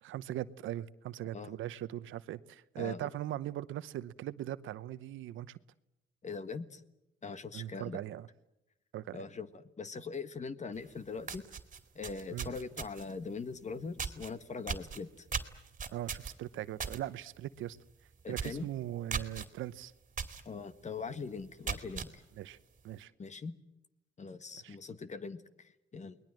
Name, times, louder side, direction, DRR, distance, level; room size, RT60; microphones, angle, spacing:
voice 1, 0.0-5.6 7.5-8.3 8.9-9.2 12.3-12.5 15.9-17.8 18.3-19.9 22.4-22.6 22.8-23.1 24.6-24.8, right 13 dB, 80° right, 0.9 m, -40 dB
voice 2, 2.8-3.1 6.2-6.8 7.2-8.0 9.1-11.4 12.0-15.3 18.2-18.7 20.5-22.2 23.2-23.6 24.2-26.2, left 4 dB, 35° left, 1.6 m, -42 dB
sound 1, 10.8-10.9 11.2-13.2 14.0-14.3 14.7-17.0 17.4-17.6 17.9-18.0 18.3-18.6 19.1-19.5 20.2-20.4 20.9-21.0 21.5-22.1, right 6 dB, 40° right, 2.4 m, -38 dB
29.5 x 20.5 x 7.7 m
cardioid pair, 90°, 20 cm